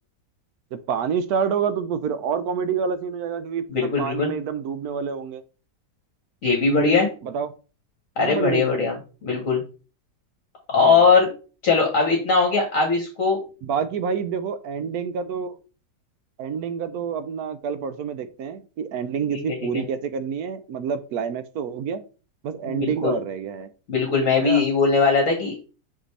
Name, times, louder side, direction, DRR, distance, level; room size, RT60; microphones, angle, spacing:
voice 1, 0.7-5.4 7.2-7.5 8.2-8.9 10.8-11.1 13.6-15.6 16.4-22.0 22.4-23.7 24.4-24.6, right 7 dB, 70° right, 12 dB, 1.0 m, -28 dB
voice 2, 3.7-4.3 6.4-7.1 8.2-8.9 9.2-9.6 10.7-11.3 11.6-13.4 19.7-19.8 22.7-23.2 23.9-25.6, left 4 dB, 50° left, 1 dB, 1.5 m, -20 dB
6.0 x 5.0 x 3.2 m, 0.35 s
omnidirectional pair, 1.8 m